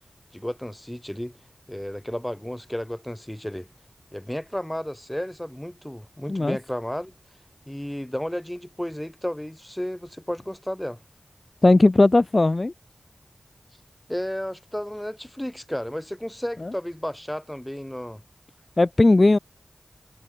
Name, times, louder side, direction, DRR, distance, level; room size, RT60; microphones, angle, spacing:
voice 1, 0.3-1.3 1.7-3.7 4.1-7.1 7.7-11.0 14.1-18.2, equal, 10° left, 1.4 m, -32 dB
voice 2, 11.6-12.7 16.6-16.7 18.8-19.4, left 2 dB, 45° left, 0.3 m, -17 dB
cardioid pair, 40°, 0 cm